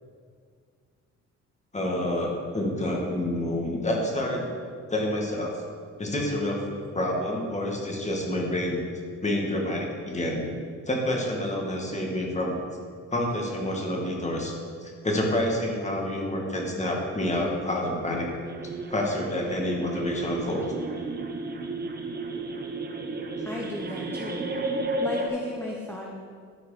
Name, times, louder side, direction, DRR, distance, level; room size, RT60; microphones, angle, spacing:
voice 1, 1.7-4.5 4.9-5.6 6.0-6.6 6.9-8.8 9.2-10.4 10.9-12.6 13.1-14.5 14.8-18.3 18.9-20.7, left 1 dB, 25° left, -1 dB, 2.1 m, -28 dB
sound 1, 18.4-25.3, right 2 dB, 30° right, 1.0 m, -33 dB
voice 2, 23.4-24.5 25.0-26.1, left 1 dB, 5° left, -3 dB, 1.0 m, -35 dB
12.5 x 4.8 x 5.0 m, 2.1 s
cardioid pair, 90°, 30 cm